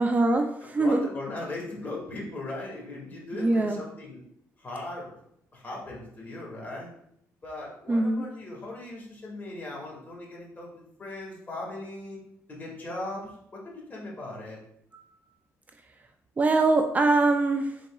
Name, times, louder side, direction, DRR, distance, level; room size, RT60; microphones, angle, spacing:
voice 1, 0.0-1.0 3.3-3.8 7.9-8.3 14.9-15.1 16.4-17.8, right 2 dB, 25° right, 5 dB, 0.3 m, -23 dB
voice 2, 0.8-4.2 4.6-5.2 5.5-6.9 7.4-10.7 11.0-12.2 12.5-14.6, left 2 dB, 30° left, -3 dB, 1.7 m, -38 dB
4.6 x 4.0 x 2.3 m, 0.73 s
cardioid pair, 95°, 6 cm